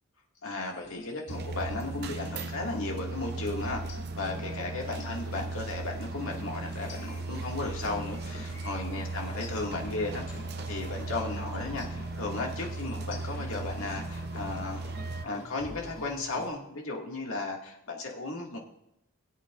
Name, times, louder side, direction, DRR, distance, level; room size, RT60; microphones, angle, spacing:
voice 1, 0.4-3.8 4.2-10.4 10.7-14.8 15.2-18.6, left 2 dB, 80° left, 0 dB, 2.0 m, -35 dB
sound 1, 0.7-2.5 2.8-3.0 3.3-4.5 4.8-8.5 8.8-9.0 9.3-10.5 10.8-11.0 11.3-14.5 14.8-15.1 15.3-16.5, left 1 dB, 55° left, 2.2 m, -46 dB
sound 2, 1.3-15.3, right 3 dB, 50° right, 0.7 m, -37 dB
sound 3, 6.7-16.5, left 2 dB, 40° left, 4.0 m, -50 dB
21.5 x 8.3 x 2.5 m, 0.84 s
head